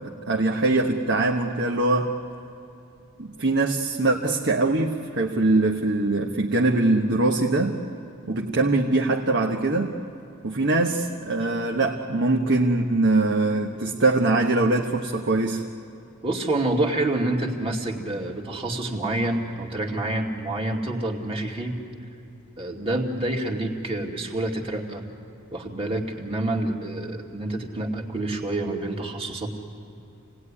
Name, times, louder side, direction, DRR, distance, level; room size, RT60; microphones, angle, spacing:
voice 1, 0.0-2.1 3.2-7.8 8.3-9.9 10.4-15.6, right 2 dB, 55° right, 1 dB, 1.3 m, -22 dB
voice 2, 16.2-21.8 22.6-25.0 25.5-29.5, right 2 dB, 25° right, 1 dB, 2.4 m, -27 dB
27.5 x 18.5 x 9.9 m, 2.8 s
head